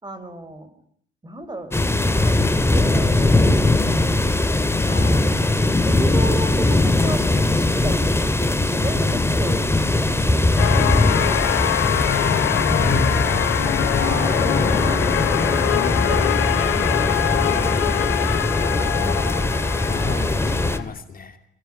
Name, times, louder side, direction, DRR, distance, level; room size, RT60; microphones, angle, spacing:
voice 1, 0.0-0.7 1.2-1.7 2.1-4.3 5.8-11.8 12.4-14.5 14.8-19.2 20.0-20.4, right 1 dB, 20° right, 11 dB, 5.5 m, -35 dB
sound 1, 1.7-20.8, left 2 dB, 10° left, 2.5 m, -20 dB
voice 2, 4.9-5.8 12.8-13.4 19.8-21.4, left 5 dB, 45° left, 7 dB, 2.8 m, -32 dB
sound 2, 10.6-20.8, left 13 dB, 90° left, 1.2 m, -24 dB
26.0 x 24.5 x 9.1 m, 0.63 s
cardioid pair, 90°, 20 cm